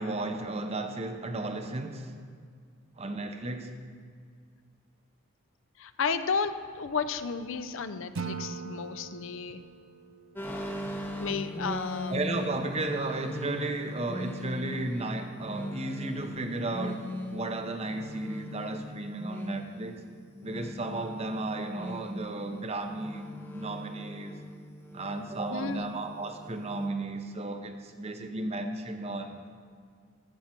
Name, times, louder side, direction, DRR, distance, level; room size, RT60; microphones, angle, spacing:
voice 1, 0.0-2.1 3.0-3.7 12.1-20.0 20.4-23.3 23.5-24.4 24.9-29.4, right 2 dB, 30° right, 6 dB, 0.7 m, -34 dB
voice 2, 5.8-9.6 11.2-12.2 25.5-25.8, left 5 dB, 60° left, 11 dB, 0.5 m, -33 dB
Acoustic guitar / Strum, 8.2-11.3, right 5 dB, 70° right, 0.4 m, -41 dB
sound 1, 10.4-26.9, left 1 dB, 10° left, 0.8 m, -40 dB
14.0 x 7.3 x 4.4 m, 2.1 s
head